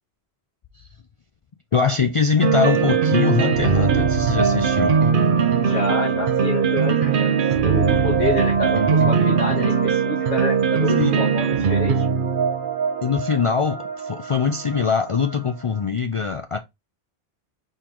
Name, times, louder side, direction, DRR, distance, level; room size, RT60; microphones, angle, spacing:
voice 1, 1.7-5.0 11.0-11.1 13.0-16.6, left 6 dB, 50° left, 0.4 m, -22 dB
sound 1, 2.4-15.3, right 6 dB, 55° right, 0.8 m, -20 dB
voice 2, 5.6-7.4 7.6-12.1, left 2 dB, 80° left, 1.7 m, -27 dB
4.5 x 3.7 x 2.9 m
omnidirectional pair, 1.1 m